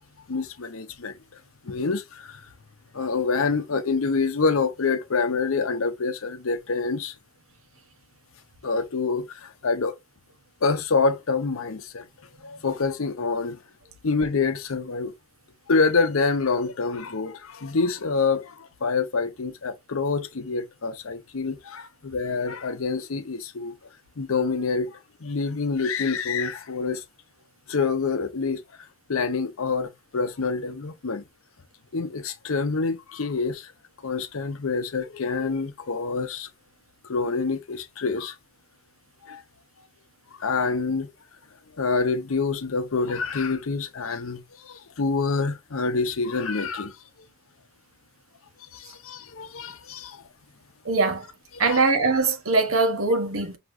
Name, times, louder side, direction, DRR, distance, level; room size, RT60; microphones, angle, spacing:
voice 1, 0.3-1.1 1.6-2.4 2.9-7.1 8.6-10.0 10.6-12.0 12.4-13.6 14.0-15.1 15.7-23.7 24.2-27.0 27.7-28.6 29.1-31.2 31.9-33.7 34.0-36.5 37.0-38.4 39.2-39.4 40.4-41.1 41.8-47.0 48.7-50.2 51.5-51.9, left 4 dB, 80° left, 0.7 m, -26 dB
voice 2, 50.8-51.3 51.6-53.6, right 3 dB, 85° right, 1.1 m, -22 dB
6.0 x 2.9 x 2.6 m
head